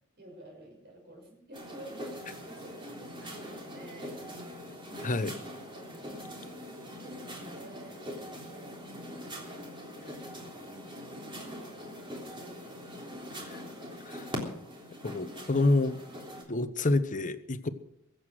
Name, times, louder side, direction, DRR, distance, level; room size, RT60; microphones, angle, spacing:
voice 1, 0.2-4.2 5.7-10.8 11.1-13.9, right 1 dB, 50° right, 1 dB, 5.9 m, -52 dB
sound 1, 1.5-16.4, equal, 25° right, 3.4 m, -42 dB
voice 2, 5.0-5.3 13.5-13.6 14.1-14.3 15.0-15.9 16.5-17.7, left 2 dB, 35° left, 11 dB, 1.0 m, -28 dB
23.0 x 8.1 x 6.3 m, 0.72 s
head